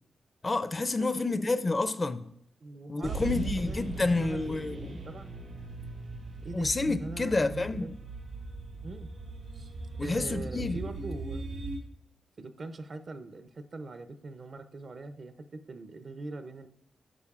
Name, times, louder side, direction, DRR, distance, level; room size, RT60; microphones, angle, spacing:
voice 1, 0.4-2.3 2.9-5.0 6.5-7.9 10.0-10.8, left 3 dB, 35° left, 0.5 m, -29 dB
voice 2, 1.0-1.4 2.6-5.3 6.4-6.7 7.0-7.9 8.8-9.1 9.5-9.7 10.0-11.5 12.4-16.7, right 3 dB, 55° right, 0.6 m, -42 dB
sound 1, 3.0-11.8, right 2 dB, 85° right, 2.4 m, -39 dB
9.9 x 6.4 x 2.4 m
cardioid pair, 65°, 0 cm